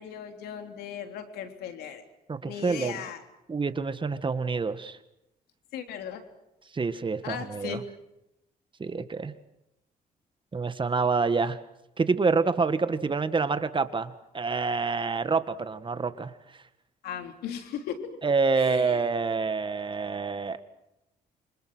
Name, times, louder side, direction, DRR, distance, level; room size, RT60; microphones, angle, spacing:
voice 1, 0.0-2.0 2.4-3.2 5.7-6.2 7.2-7.8 17.0-18.1 18.6-19.0, left 8 dB, 90° left, 6 dB, 3.4 m, -37 dB
voice 2, 2.3-3.0 3.5-5.0 6.7-7.8 8.8-9.3 10.5-11.6 12.0-16.3 18.2-20.6, right 4 dB, 30° right, 11 dB, 1.8 m, -27 dB
27.5 x 25.5 x 6.3 m, 0.87 s
cardioid pair, 85°, 16 cm